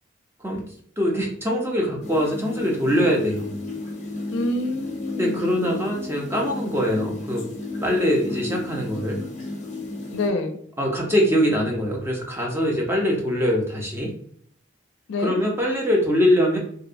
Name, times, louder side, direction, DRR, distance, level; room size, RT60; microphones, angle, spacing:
voice 1, 1.0-3.5 5.2-7.4 7.8-9.2 10.8-14.1 15.2-16.6, equal, 10° right, -1 dB, 0.4 m, -23 dB
sound 1, 2.0-10.3, left 2 dB, 35° left, 0.5 m, -34 dB
voice 2, 4.3-5.8 10.1-10.6 15.1-15.4, left 2 dB, 80° left, 6 dB, 0.4 m, -27 dB
2.7 x 2.0 x 2.5 m, 0.63 s
head